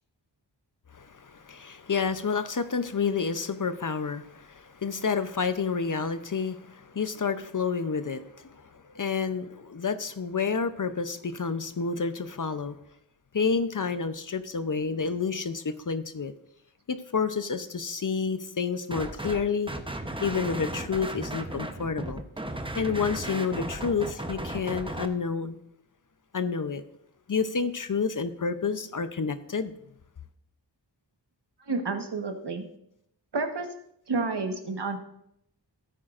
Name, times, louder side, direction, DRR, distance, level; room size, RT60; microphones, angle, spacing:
voice 1, 0.9-12.8 13.3-16.3 16.9-19.7 20.2-22.2 22.8-25.6 26.3-26.8 27.3-29.7, left 5 dB, 45° left, 11 dB, 0.7 m, -29 dB
sound 1, 18.9-19.4 19.7-25.1, right 1 dB, 10° right, 0.8 m, -35 dB
voice 2, 31.7-32.6 33.3-33.7 34.1-35.0, right 3 dB, 65° right, 5 dB, 1.3 m, -30 dB
13.0 x 9.1 x 2.5 m, 0.76 s
wide cardioid pair, 55°, 45 cm